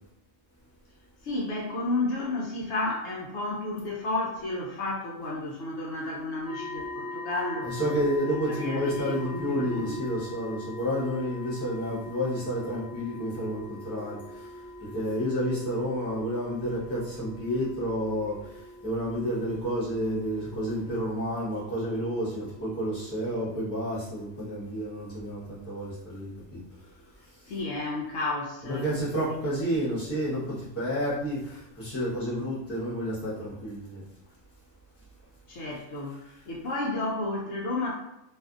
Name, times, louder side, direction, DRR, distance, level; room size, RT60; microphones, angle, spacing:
voice 1, 1.2-7.7 8.5-10.0 27.5-28.9 29.3-29.5 35.5-36.2 36.5-37.9, left 2 dB, 70° left, -3 dB, 0.8 m, -32 dB
sound 1, 6.4-23.3, left 1 dB, 25° right, 0.7 m, -42 dB
voice 2, 7.6-14.2 14.9-18.4 18.8-26.6 28.6-34.0, equal, 15° left, -9 dB, 0.8 m, -30 dB
2.5 x 2.5 x 2.3 m, 0.83 s
omnidirectional pair, 1.3 m